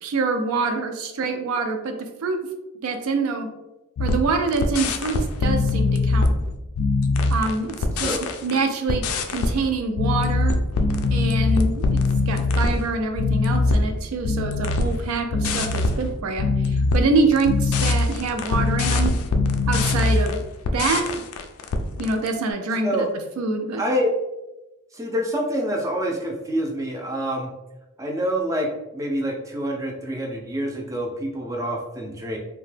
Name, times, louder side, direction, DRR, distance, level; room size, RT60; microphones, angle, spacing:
voice 1, 0.0-1.9 2.2-2.5 2.8-3.5 4.0-6.3 7.3-8.2 8.4-9.0 9.3-10.6 11.1-19.1 19.7-20.4 20.7-21.0 22.0-23.1 23.4-23.8, right 3 dB, 80° right, 5 dB, 0.4 m, -25 dB
sound 1, 4.0-8.6 8.9-22.3, left 3 dB, 80° left, 0.3 m, -22 dB
voice 2, 23.8-24.1 24.9-27.5 28.0-28.7 28.9-32.4, equal, 15° right, 0 dB, 0.4 m, -26 dB
2.8 x 2.1 x 3.2 m, 0.98 s
head